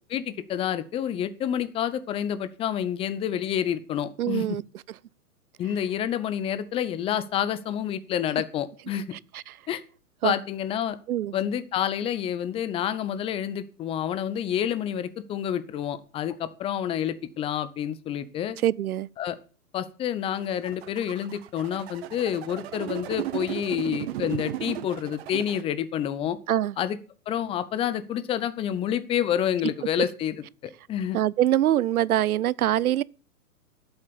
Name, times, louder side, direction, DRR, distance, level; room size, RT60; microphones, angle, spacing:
voice 1, 0.1-4.6 5.6-9.2 9.7-9.8 10.2-11.0 11.3-18.6 19.2-19.4 19.7-26.4 26.8-27.0 27.3-31.2, left 9 dB, 15° left, 0.6 m, -28 dB
voice 2, 4.2-4.6 9.3-9.4 10.2-10.3 11.1-11.3 18.6-19.1 26.5-26.7 31.1-33.0, right 12 dB, 75° right, 0.6 m, -23 dB
sound 1, 20.4-25.6, right 14 dB, 45° right, 1.0 m, -35 dB
11.5 x 8.0 x 6.9 m
hypercardioid pair, 125°, 44 cm